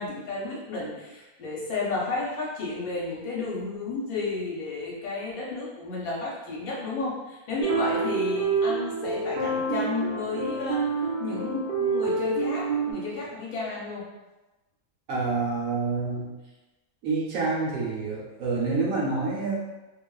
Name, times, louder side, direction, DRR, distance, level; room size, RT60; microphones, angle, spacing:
voice 1, 0.0-10.8 11.2-14.0, left 3 dB, 75° left, -5 dB, 1.2 m, -32 dB
sound 1, 7.6-12.9, right 4 dB, 90° right, 0.4 m, -27 dB
voice 2, 15.1-16.3 17.0-19.5, right 4 dB, 70° right, -4 dB, 1.1 m, -27 dB
2.7 x 2.4 x 2.3 m, 1.1 s
omnidirectional pair, 1.5 m